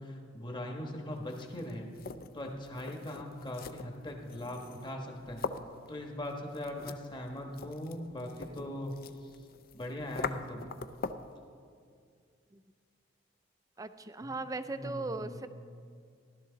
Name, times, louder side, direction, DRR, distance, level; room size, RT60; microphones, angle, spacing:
voice 1, 0.0-1.9 2.3-5.4 5.9-8.9 9.2-9.3 9.7-10.6 14.2-14.3 14.7-15.4, left 1 dB, 25° left, 2 dB, 1.2 m, -40 dB
sound 1, 1.2-11.4, left 5 dB, 50° left, 0.4 m, -44 dB
voice 2, 13.8-15.5, right 2 dB, 20° right, 11 dB, 0.4 m, -38 dB
15.0 x 12.0 x 3.9 m, 2.2 s
head